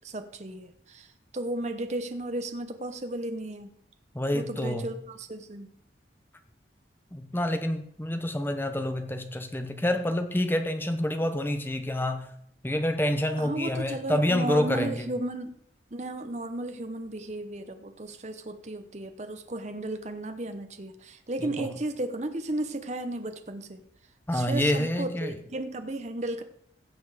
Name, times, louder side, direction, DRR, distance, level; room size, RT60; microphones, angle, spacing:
voice 1, 0.0-3.7 4.3-5.7 13.4-15.5 15.9-23.8 24.3-26.4, right 1 dB, 35° right, 7 dB, 0.8 m, -34 dB
voice 2, 4.1-4.8 7.1-12.3 12.6-15.1 21.4-21.7 24.3-25.4, left 1 dB, 10° left, 7 dB, 0.9 m, -28 dB
16.0 x 6.9 x 4.9 m, 0.71 s
head